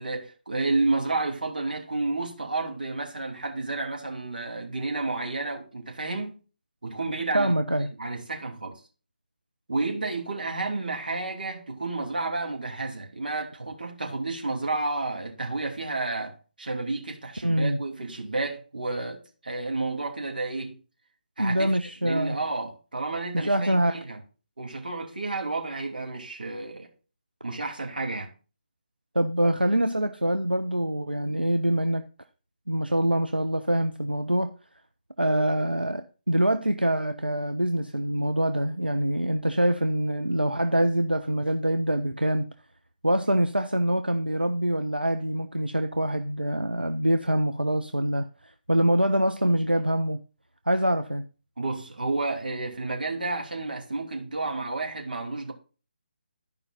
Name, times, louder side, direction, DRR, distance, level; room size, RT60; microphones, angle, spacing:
voice 1, 0.0-6.4 6.8-7.5 8.0-8.8 9.7-20.7 21.4-21.7 22.0-24.2 24.6-26.9 27.4-28.3 31.3-31.4 51.6-55.5, right 3 dB, 65° right, 2.8 m, -31 dB
voice 2, 7.3-7.9 17.4-17.8 21.4-22.4 23.3-24.0 29.1-32.0 32.7-34.5 35.2-42.5 43.0-48.3 48.7-50.2 50.7-51.3, right 1 dB, 90° right, 0.6 m, -25 dB
13.0 x 5.2 x 4.2 m
figure-of-eight pair, 145°, 5 cm